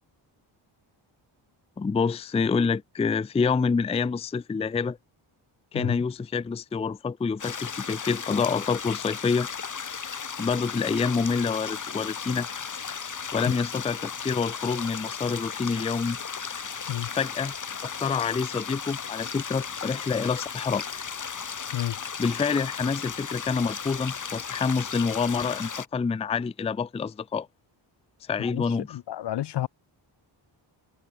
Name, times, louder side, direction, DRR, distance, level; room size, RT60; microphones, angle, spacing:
voice 1, 1.8-5.0 5.7-9.5 10.4-12.5 13.3-16.2 17.1-17.5 17.8-20.8 22.2-27.5 28.3-29.0, left 5 dB, 15° left, 0.4 m, -27 dB
sound 1, 7.4-25.9, left 6 dB, 40° left, 1.5 m, -35 dB
voice 2, 28.9-29.7, left 13 dB, 55° left, 0.6 m, -30 dB
cardioid pair, 60°, 49 cm